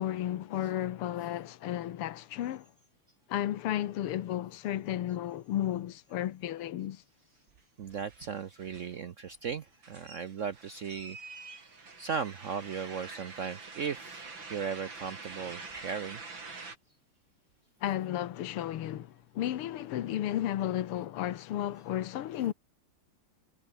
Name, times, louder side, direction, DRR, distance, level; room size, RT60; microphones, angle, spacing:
voice 1, 0.0-2.7 3.3-7.0 17.8-22.5, left 12 dB, 85° left, 2.0 m, -33 dB
sound 1, 7.6-7.7 7.9-9.0 9.3-16.8, right 4 dB, 60° right, 4.9 m, -46 dB
voice 2, 7.8-11.2 12.0-16.2, right 6 dB, 80° right, 0.7 m, -37 dB
omnidirectional pair, 2.4 m